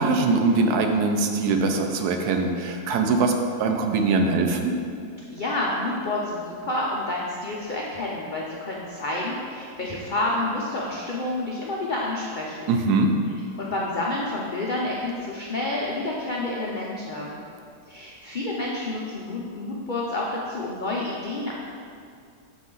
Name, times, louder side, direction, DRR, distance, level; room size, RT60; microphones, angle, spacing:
voice 1, 0.0-4.8 12.7-13.1, right 3 dB, 75° right, 4 dB, 1.1 m, -22 dB
voice 2, 5.3-12.8 13.6-17.4 17.9-21.5, left 2 dB, 90° left, -4 dB, 0.4 m, -29 dB
6.8 x 4.1 x 3.8 m, 2.3 s
omnidirectional pair, 1.7 m